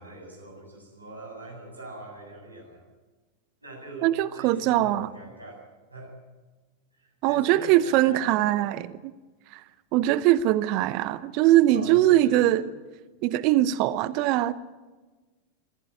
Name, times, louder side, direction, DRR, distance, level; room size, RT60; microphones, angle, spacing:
voice 1, 0.0-2.8 3.6-5.6 5.9-6.1 7.0-8.7 11.7-12.7, right 2 dB, 85° right, 0 dB, 7.7 m, -42 dB
voice 2, 4.0-5.1 7.2-8.9 9.5-9.6 9.9-12.6 13.2-14.5, right 14 dB, 45° right, 18 dB, 0.8 m, -22 dB
24.5 x 16.0 x 9.2 m, 1.3 s
figure-of-eight pair, 90°, 0 cm